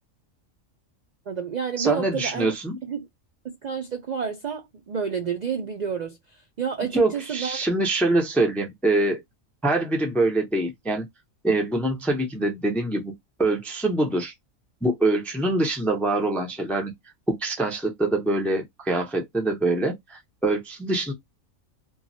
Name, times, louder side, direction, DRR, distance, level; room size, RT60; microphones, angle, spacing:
voice 1, 1.3-2.5 2.8-3.0 3.4-7.6, right 7 dB, 75° right, 0.4 m, -30 dB
voice 2, 1.8-2.8 6.9-9.2 9.6-11.1 11.4-13.1 13.4-14.3 14.8-16.9 17.3-21.1, right 2 dB, ahead, 0.5 m, -24 dB
3.0 x 2.3 x 2.6 m
omnidirectional pair, 1.4 m